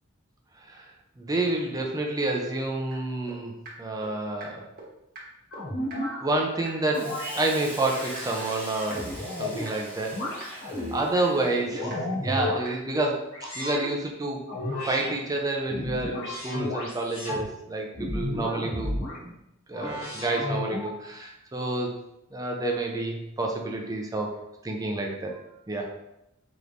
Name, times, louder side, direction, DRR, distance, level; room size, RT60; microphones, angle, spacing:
voice 1, 1.2-3.5 3.8-4.6 6.2-10.2 10.5-13.2 13.6-14.4 14.8-18.9 19.2-19.3 19.7-22.0 22.3-24.4 24.6-25.4 25.7-25.9, right 2 dB, 15° right, 1 dB, 0.5 m, -29 dB
sound 1, 2.9-3.0 3.3-3.4 3.6-3.7 4.0-4.1 4.4-4.5 4.8-4.9 5.1-5.2 5.5-5.6 5.9-6.0 6.3-6.4 6.6-6.7 7.0-7.1 7.4-7.5 7.8-7.9 8.1-8.2 8.5-8.6 8.9-9.0 9.3-9.4 9.6-9.7 10.0-10.1 10.4-10.5 10.8-10.9 11.1-11.2 11.5-11.6 11.9-12.0 12.3-12.4 12.6-12.7, right 2 dB, 45° right, 1.2 m, -42 dB
sound 2, 5.5-6.2 6.9-7.4 7.9-9.7 10.1-11.0 11.5-12.6 13.3-13.9 14.5-15.1 15.6-17.4 17.9-19.2 19.7-21.0, left 1 dB, 65° left, 1.4 m, -33 dB
Hiss, 6.9-11.7, equal, 5° left, 1.1 m, -42 dB
5.1 x 3.1 x 2.6 m, 0.86 s
head